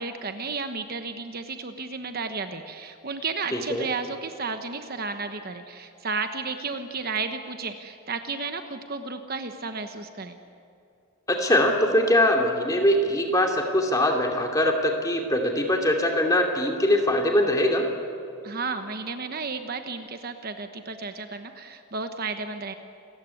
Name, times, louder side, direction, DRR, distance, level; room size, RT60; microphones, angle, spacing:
voice 1, 0.0-10.4 18.4-22.7, right 4 dB, 40° right, 7 dB, 1.1 m, -33 dB
voice 2, 3.5-3.9 11.3-17.8, left 1 dB, 15° left, 2 dB, 2.7 m, -22 dB
28.5 x 15.0 x 9.8 m, 2.6 s
head